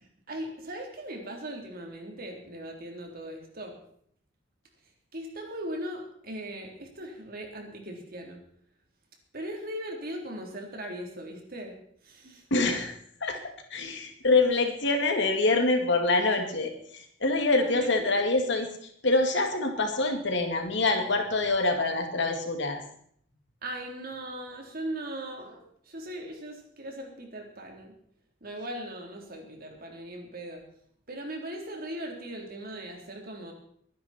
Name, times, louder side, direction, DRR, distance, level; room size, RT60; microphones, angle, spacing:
voice 1, 0.3-3.8 5.1-8.4 9.3-11.7 12.0-12.4 17.5-18.4 23.6-25.6 25.9-27.9 28.4-30.6 31.1-33.5, right 1 dB, 50° right, 2 dB, 3.6 m, -39 dB
voice 2, 12.5-12.9 13.2-13.4 13.7-18.7 19.0-22.8, left 3 dB, 65° left, 4 dB, 2.4 m, -25 dB
23.0 x 10.5 x 4.4 m, 0.64 s
head